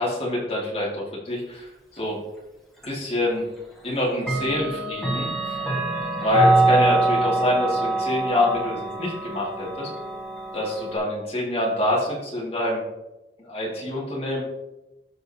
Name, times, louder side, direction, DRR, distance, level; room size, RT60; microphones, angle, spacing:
voice 1, 0.0-1.7 1.9-2.2 2.9-3.4 3.8-5.6 6.2-9.9 10.5-12.8 13.4-14.4, left 1 dB, 35° left, -4 dB, 2.0 m, -26 dB
Clock, 2.8-2.9 4.2-11.0, right 2 dB, ahead, 1.5 m, -24 dB
13.0 x 5.2 x 2.8 m, 1.0 s
head